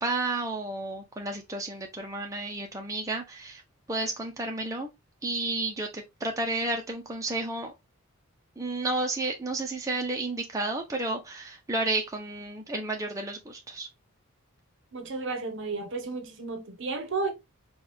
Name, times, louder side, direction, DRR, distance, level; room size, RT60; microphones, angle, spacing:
voice 1, 0.0-3.6 3.9-4.9 5.2-7.7 8.6-13.9, right 2 dB, 15° right, 0.6 m, -31 dB
voice 2, 14.9-17.3, right 3 dB, 55° right, 0.8 m, -33 dB
4.5 x 2.3 x 3.3 m
head